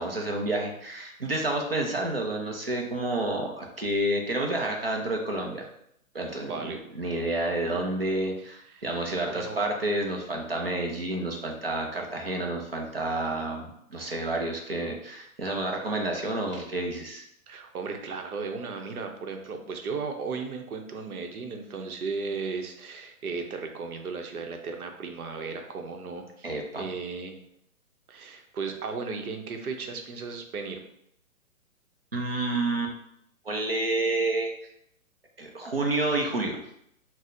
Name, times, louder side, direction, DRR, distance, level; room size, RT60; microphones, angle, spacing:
voice 1, 0.0-5.6 6.1-17.2 26.4-26.8 32.1-32.9 33.4-34.5 35.4-36.6, right 2 dB, 45° right, 1 dB, 0.4 m, -29 dB
voice 2, 6.3-6.8 8.4-9.7 17.5-27.4 28.1-30.8, right 4 dB, 85° right, 4 dB, 0.7 m, -36 dB
4.1 x 2.0 x 2.5 m, 0.74 s
hypercardioid pair, 180°, 43 cm